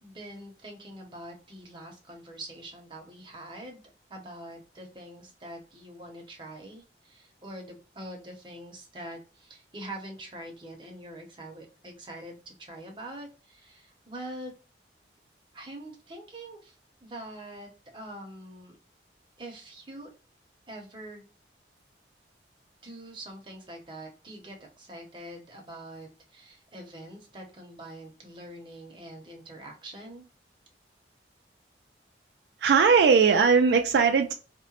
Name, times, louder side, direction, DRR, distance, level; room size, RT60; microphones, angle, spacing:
voice 1, 0.0-3.8 4.1-14.5 15.5-18.8 19.4-20.1 20.7-21.2 22.8-30.2, right 1 dB, 25° right, 0.7 m, -44 dB
voice 2, 32.6-34.3, right 5 dB, 70° right, 0.3 m, -19 dB
2.8 x 2.1 x 2.8 m
head